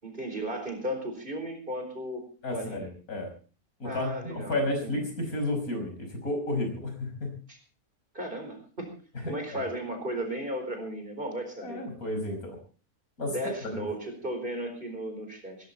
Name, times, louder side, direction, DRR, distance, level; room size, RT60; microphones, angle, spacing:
voice 1, 0.0-2.9 3.8-5.0 7.5-7.6 8.1-8.9 9.3-11.8 13.2-15.7, right 1 dB, 35° right, 5 dB, 4.6 m, -35 dB
voice 2, 2.4-3.3 3.8-7.3 9.2-9.6 11.6-12.6 13.2-13.4 13.7-13.8, left 1 dB, 80° left, 4 dB, 5.9 m, -32 dB
18.0 x 15.5 x 4.2 m, 0.38 s
omnidirectional pair, 1.5 m